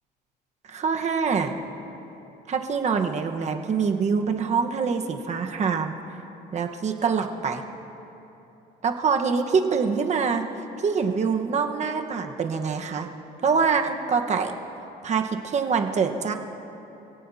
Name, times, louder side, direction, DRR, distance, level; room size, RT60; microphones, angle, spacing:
voice 1, 0.7-1.6 2.5-5.9 6.5-7.6 8.8-10.4 10.8-13.1 13.4-14.5 15.0-16.3, right 5 dB, 40° right, 4 dB, 1.2 m, -25 dB
27.5 x 17.0 x 2.8 m, 3.0 s
cardioid pair, 110°, 17 cm